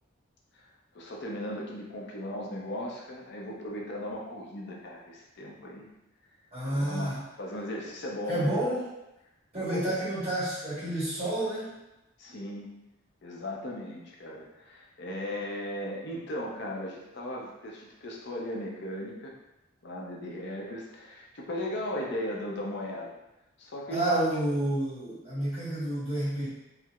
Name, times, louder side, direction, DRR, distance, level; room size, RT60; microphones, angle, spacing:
voice 1, 0.9-5.9 6.7-8.6 9.6-10.0 12.2-12.9 13.2-19.3 19.8-23.2 23.6-24.2, left 1 dB, 60° left, -2 dB, 0.6 m, -37 dB
voice 2, 6.5-7.2 8.3-8.9 9.5-11.8 23.9-26.5, right 1 dB, 30° right, -10 dB, 1.4 m, -29 dB
4.3 x 2.0 x 2.4 m, 0.94 s
head